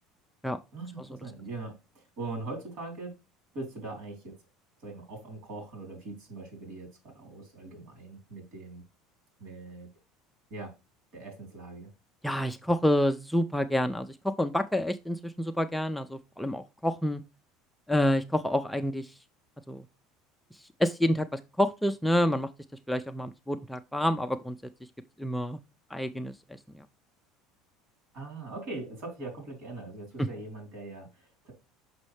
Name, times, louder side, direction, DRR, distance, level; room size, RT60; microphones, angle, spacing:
voice 1, 0.7-3.1 3.5-4.4 4.8-8.8 9.4-9.9 10.5-10.7 11.1-11.9 28.1-31.5, right 2 dB, 60° right, 3.3 m, -41 dB
voice 2, 12.2-17.2 17.9-19.1 19.7-19.9 20.8-22.5 22.9-24.6 25.2-25.6 25.9-26.8 30.2-30.3, left 1 dB, ahead, 0.4 m, -28 dB
6.2 x 5.3 x 3.2 m
cardioid pair, 150°, 0 cm